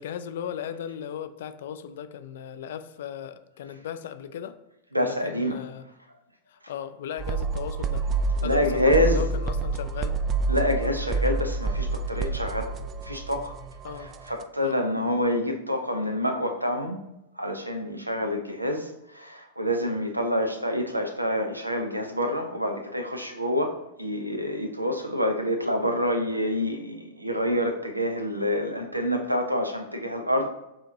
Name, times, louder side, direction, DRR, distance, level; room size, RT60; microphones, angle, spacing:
voice 1, 0.0-4.6 5.0-5.9 6.5-8.1 8.4-10.2 13.8-14.1 14.6-14.9, left 9 dB, 60° left, 11 dB, 0.3 m, -36 dB
voice 2, 4.9-5.6 8.4-9.2 10.5-13.5 14.0-17.0 17.4-30.5, equal, 85° right, 6 dB, 0.5 m, -27 dB
sound 1, 7.2-14.4, right 3 dB, 25° right, 0.3 m, -28 dB
6.9 x 2.9 x 2.6 m, 0.93 s
figure-of-eight pair, 90°, 0 cm